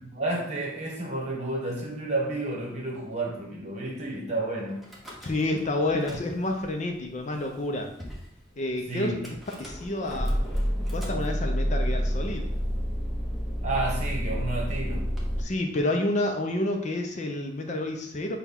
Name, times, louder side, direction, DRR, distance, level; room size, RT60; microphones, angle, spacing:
voice 1, 0.0-4.8 8.9-9.3 13.6-15.1, right 2 dB, 35° right, -2 dB, 1.1 m, -31 dB
Car / Engine starting / Idling, 4.8-5.6 5.9-6.7 7.3-7.4 7.6-7.7 8.0-8.3 9.2-15.4, equal, ahead, 0.8 m, -29 dB
voice 2, 5.2-7.9 8.6-9.1 9.6-10.4 10.9-12.5 15.4-18.4, left 1 dB, 40° left, 2 dB, 0.5 m, -29 dB
6.2 x 2.3 x 3.5 m, 0.69 s
head